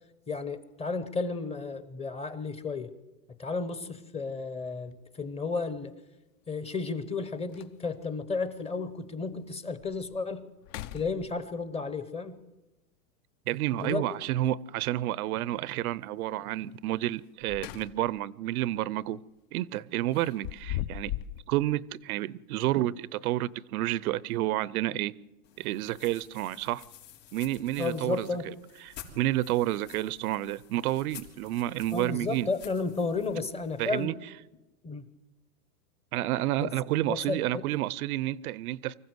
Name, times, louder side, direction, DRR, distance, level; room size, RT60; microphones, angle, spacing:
voice 1, 0.3-2.9 3.4-6.0 6.5-10.4 10.9-12.4 13.7-14.0 27.8-28.5 31.9-34.1 34.8-35.0 36.6-36.7 37.1-37.7, left 4 dB, 10° left, 0.8 m, -33 dB
Door opening and closing., 4.8-4.9 6.7-6.8 7.2-7.3 7.5-8.1 8.7-8.8 9.3-9.4 9.8-10.2 10.6-11.7 13.8-14.4 17.2-18.2 18.6-18.8 20.1-21.4, left 13 dB, 50° left, 0.8 m, -39 dB
voice 2, 13.5-19.2 19.5-21.1 21.5-25.1 25.6-26.8 27.3-28.3 28.8-32.5 33.8-34.1 36.1-39.0, right 15 dB, 60° right, 0.7 m, -30 dB
sound 1, 25.4-34.0, left 9 dB, 80° left, 4.0 m, -51 dB
24.5 x 15.0 x 7.9 m
supercardioid pair, 135°, 49 cm